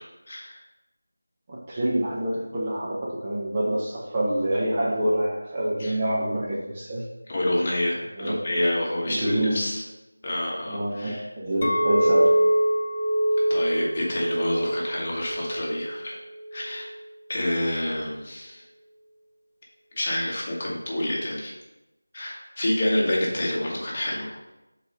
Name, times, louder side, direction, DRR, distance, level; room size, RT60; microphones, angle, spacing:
voice 1, 0.3-0.6 5.8-6.0 7.3-9.8 10.2-11.3 13.5-16.2 16.5-16.9 17.3-18.6 19.9-21.5 22.1-24.4, left 1 dB, 30° left, -4 dB, 1.4 m, -28 dB
voice 2, 1.5-7.0 8.1-8.4 9.0-9.7 10.7-12.4, right 1 dB, 20° right, -4 dB, 0.8 m, -26 dB
Chink clink, 11.6-16.8, right 1 dB, 45° left, 0.8 m, -24 dB
5.9 x 4.1 x 5.3 m, 0.99 s
figure-of-eight pair, 170°, 0 cm